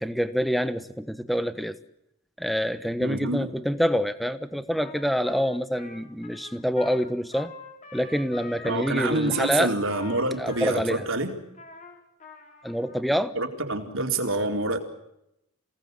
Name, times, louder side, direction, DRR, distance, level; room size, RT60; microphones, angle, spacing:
voice 1, 0.0-1.8 2.4-7.5 7.9-9.7 10.4-11.1 12.6-13.3, equal, ahead, 1.2 m, -26 dB
voice 2, 3.0-3.5 8.6-11.4 13.3-14.8, right 2 dB, 65° right, 4.1 m, -27 dB
Trumpet, 4.7-13.0, left 4 dB, 35° left, 5.3 m, -45 dB
28.5 x 19.0 x 8.3 m
head